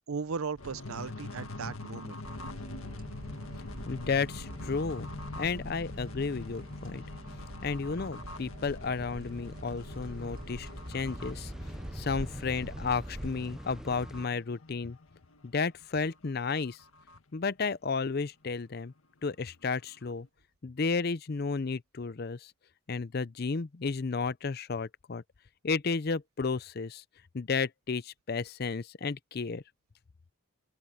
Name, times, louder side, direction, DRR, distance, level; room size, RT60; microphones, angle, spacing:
voice 1, 0.1-2.2, right 5 dB, 80° right, 0.6 m, -37 dB
sound 1, 0.6-15.8 16.3-16.4 16.5-17.2, left 2 dB, 80° left, 1.8 m, -44 dB
sound 2, 2.2-13.3, right 1 dB, 45° right, 1.9 m, -45 dB
voice 2, 3.9-7.0 7.6-11.5 11.9-15.0 15.4-16.8 17.3-18.9 19.2-20.3 20.6-22.5 22.9-25.2 25.6-27.0 27.3-29.6, left 4 dB, 45° left, 0.5 m, -32 dB
sound 3, 9.0-14.3, equal, 5° right, 0.4 m, -44 dB
open air
head